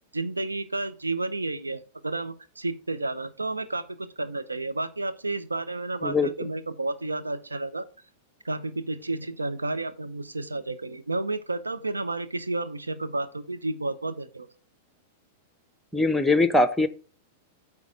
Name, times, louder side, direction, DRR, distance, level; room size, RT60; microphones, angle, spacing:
voice 1, 0.1-7.9 8.4-14.5, right 2 dB, 90° right, 11 dB, 0.8 m, -31 dB
voice 2, 15.9-16.9, left 2 dB, 5° left, 11 dB, 0.8 m, -21 dB
9.1 x 3.6 x 6.3 m, 0.38 s
figure-of-eight pair, 100°, 0 cm